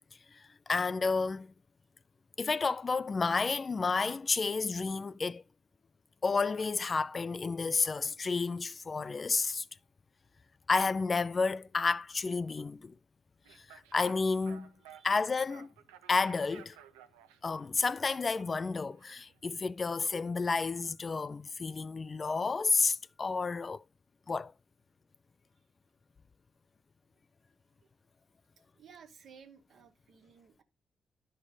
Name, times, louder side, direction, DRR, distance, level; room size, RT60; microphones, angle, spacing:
voice 1, 0.3-1.5 2.4-5.4 6.2-9.7 10.7-12.9 13.5-14.7 15.0-15.7 16.1-16.8 17.4-23.8 24.3-24.5, left 4 dB, 40° left, 0.4 m, -31 dB
sound 1, 13.4-20.8, right 10 dB, 90° right, 0.6 m, -57 dB
voice 2, 28.7-30.6, right 6 dB, 65° right, 1.4 m, -56 dB
11.0 x 4.4 x 4.9 m
hypercardioid pair, 45°, 0 cm